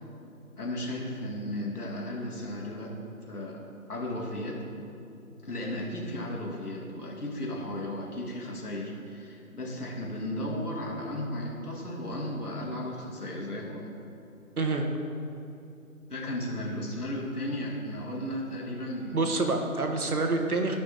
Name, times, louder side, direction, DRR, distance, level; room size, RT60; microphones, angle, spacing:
voice 1, 0.6-3.0 3.3-3.6 3.9-4.6 5.4-13.9 16.1-19.2, left 1 dB, 85° left, -1 dB, 2.2 m, -35 dB
voice 2, 14.6-14.9 19.1-20.8, right 3 dB, 75° right, 3 dB, 1.4 m, -27 dB
14.5 x 5.5 x 3.5 m, 2.7 s
figure-of-eight pair, 165°, 44 cm